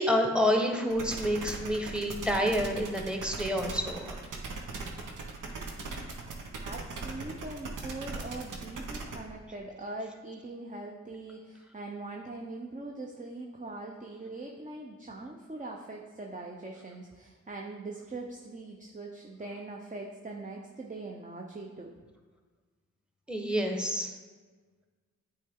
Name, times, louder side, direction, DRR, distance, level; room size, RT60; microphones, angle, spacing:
voice 1, 0.0-4.2 23.3-24.1, equal, 5° right, 3 dB, 1.1 m, -28 dB
sound 1, 0.9-9.2, right 3 dB, 70° right, 1.0 m, -39 dB
voice 2, 6.6-21.9, right 2 dB, 25° right, 0 dB, 0.7 m, -42 dB
8.4 x 3.4 x 3.7 m, 1.4 s
supercardioid pair, 45°, 33 cm